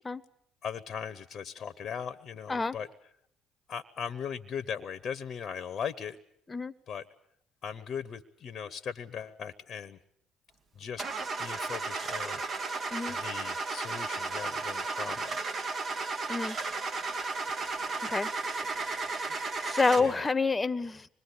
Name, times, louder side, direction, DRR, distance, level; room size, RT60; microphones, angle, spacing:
voice 1, 0.6-2.9 3.7-6.2 6.9-7.1 7.6-10.0 10.8-11.0 11.4-12.4 13.1-15.3 20.0-20.2, left 7 dB, 50° left, 16 dB, 1.0 m, -38 dB
Car / Engine starting, 11.0-20.3, right 3 dB, 45° right, 1.9 m, -34 dB
voice 2, 19.6-21.1, left 3 dB, 25° left, 18 dB, 1.1 m, -28 dB
25.5 x 21.0 x 8.4 m, 0.68 s
hypercardioid pair, 55°, 0 cm